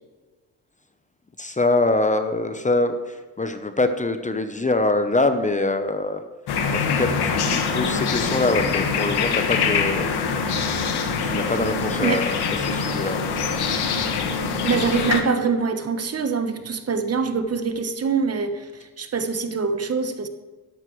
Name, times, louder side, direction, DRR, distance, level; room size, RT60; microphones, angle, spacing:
voice 1, 1.4-6.2 6.7-10.1 11.2-13.2, left 2 dB, 20° left, 8 dB, 0.9 m, -24 dB
sound 1, 6.5-15.2, left 5 dB, 75° left, 1.7 m, -24 dB
voice 2, 14.6-20.3, right 5 dB, 40° right, 8 dB, 1.2 m, -24 dB
12.5 x 11.0 x 3.2 m, 1.3 s
cardioid pair, 85°, 39 cm